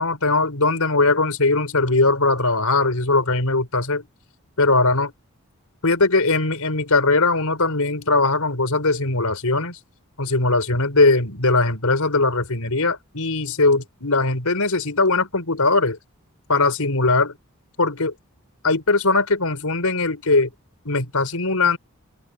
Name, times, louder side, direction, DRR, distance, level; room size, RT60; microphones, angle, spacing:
voice 1, 0.0-4.0 4.6-5.1 5.8-9.8 10.2-16.0 16.5-17.3 17.8-18.1 18.6-20.5 20.8-21.8, left 3 dB, 85° left, 4.9 m, -20 dB
head